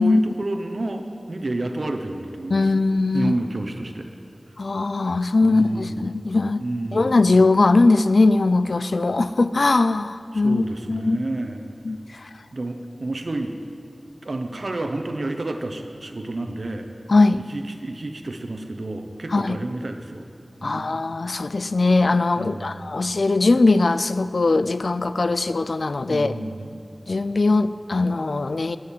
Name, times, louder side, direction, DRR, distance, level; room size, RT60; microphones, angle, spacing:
voice 1, 0.0-2.8 3.1-4.1 5.4-6.2 6.6-7.2 10.3-11.7 12.5-13.5 14.2-16.9 17.5-20.3 20.6-21.0 22.4-23.0 26.1-26.8, right 2 dB, 70° right, 5 dB, 0.9 m, -30 dB
voice 2, 2.5-3.3 4.6-6.6 6.9-11.2 11.8-12.3 17.1-17.4 19.3-19.6 20.6-26.4 27.1-28.8, left 3 dB, 80° left, 14 dB, 0.3 m, -20 dB
9.9 x 6.3 x 8.5 m, 2.5 s
wide cardioid pair, 45°, 0 cm